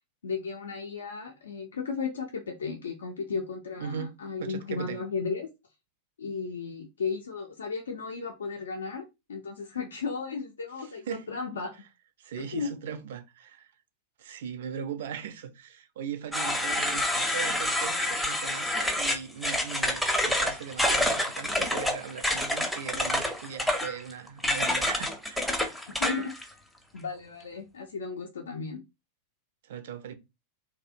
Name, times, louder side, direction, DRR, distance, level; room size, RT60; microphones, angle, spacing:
voice 1, 0.2-5.5 6.2-11.8 12.5-12.8 25.9-26.3 26.9-28.8, left 5 dB, 70° left, 0.5 m, -35 dB
voice 2, 3.8-4.1 4.4-5.0 11.1-11.2 12.2-13.7 14.2-25.6 29.6-30.1, right 8 dB, 55° right, 0.4 m, -39 dB
sound 1, 16.3-26.4, left 1 dB, ahead, 0.5 m, -28 dB
2.6 x 2.0 x 2.5 m
figure-of-eight pair, 90°, 0 cm